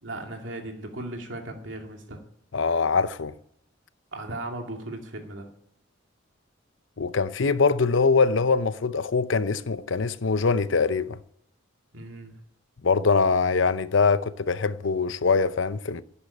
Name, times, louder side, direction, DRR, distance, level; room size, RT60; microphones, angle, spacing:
voice 1, 0.0-2.2 4.1-5.5 11.9-12.3, right 1 dB, 75° right, 2.5 m, -37 dB
voice 2, 2.5-3.3 7.0-11.2 12.8-16.0, left 4 dB, 80° left, 0.7 m, -23 dB
12.0 x 9.8 x 9.8 m
head